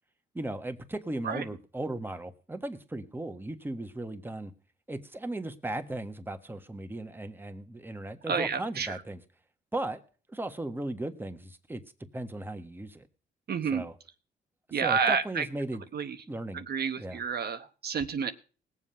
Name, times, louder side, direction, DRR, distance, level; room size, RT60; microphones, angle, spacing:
voice 1, 0.3-4.5 4.9-9.2 9.7-10.0 10.3-11.8 12.1-13.0 13.7-13.9 14.8-15.8 16.3-16.6 17.0-17.2, right 1 dB, 10° right, 7 dB, 1.5 m, -36 dB
voice 2, 8.3-9.0 13.5-13.9 14.7-15.5 15.9-16.2 16.5-18.3, right 6 dB, 55° right, 8 dB, 1.0 m, -30 dB
19.5 x 7.4 x 5.7 m, 0.38 s
cardioid pair, 90°, 20 cm